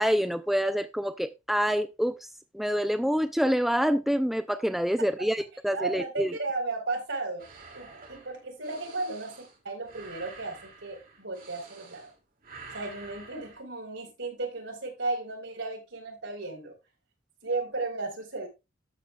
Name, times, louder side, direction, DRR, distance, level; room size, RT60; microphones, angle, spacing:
voice 1, 0.0-2.3 2.5-6.4, equal, ahead, 0.4 m, -27 dB
voice 2, 5.7-7.4 7.7-12.1 12.7-16.7 17.4-18.5, right 3 dB, 70° right, 4.6 m, -34 dB
sound 1, 7.4-12.2 12.4-13.6, right 4 dB, 50° right, 2.7 m, -48 dB
13.0 x 8.1 x 2.4 m
head